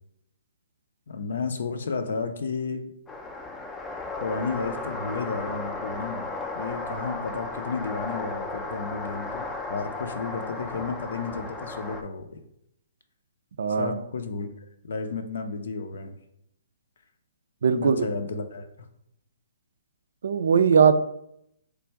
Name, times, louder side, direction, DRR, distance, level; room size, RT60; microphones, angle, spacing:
voice 1, 1.1-2.8 4.2-12.4 13.8-14.5 14.8-16.2 17.7-18.7, left 4 dB, 70° left, 7 dB, 0.5 m, -32 dB
sound 1, 3.1-12.0, left 3 dB, 15° left, 0.4 m, -35 dB
voice 2, 13.6-14.0 17.6-18.0 20.2-20.9, right 6 dB, 70° right, 12 dB, 0.3 m, -20 dB
3.2 x 2.5 x 4.4 m, 0.76 s
hypercardioid pair, 140°, 0 cm